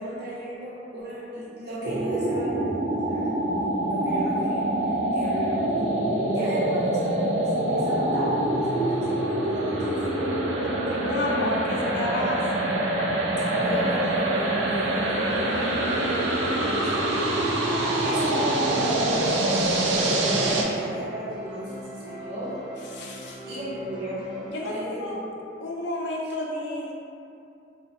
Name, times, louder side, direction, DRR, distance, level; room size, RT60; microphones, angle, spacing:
voice 1, 0.0-3.3 3.7-5.9 6.3-10.3 13.5-17.1 17.6-21.7 22.0-22.6 23.0-23.1 23.5-24.3 24.6-25.4 26.2-26.3, right 1 dB, 60° right, -9 dB, 0.7 m, -35 dB
sound 1, 1.8-20.6, right 1 dB, 85° right, 0.4 m, -25 dB
voice 2, 10.9-12.6 22.9-23.4 24.5-25.2 25.6-27.0, left 1 dB, 65° left, -2 dB, 0.4 m, -31 dB
sound 2, 16.2-24.5, equal, 25° right, 0.5 m, -41 dB
2.6 x 2.1 x 2.5 m, 2.6 s
head